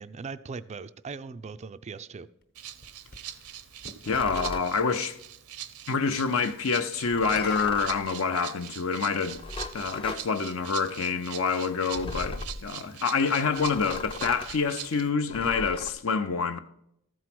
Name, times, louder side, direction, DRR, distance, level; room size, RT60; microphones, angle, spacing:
voice 1, 0.0-2.3, right 4 dB, 30° right, 0.3 m, -39 dB
sound 1, 2.4-4.3 7.1-8.9 9.8-9.9 13.6-15.2, left 3 dB, 45° left, 1.0 m, -45 dB
Rattle (instrument), 2.5-15.1, right 11 dB, 75° right, 0.7 m, -43 dB
voice 2, 4.0-5.2 5.9-9.4 9.7-16.6, left 5 dB, 65° left, 0.7 m, -27 dB
sound 2, 4.0-4.7 7.0-8.1 9.2-10.2 11.9-12.7 13.6-14.5 15.3-15.9, left 3 dB, 25° left, 0.5 m, -38 dB
13.5 x 4.7 x 5.9 m
head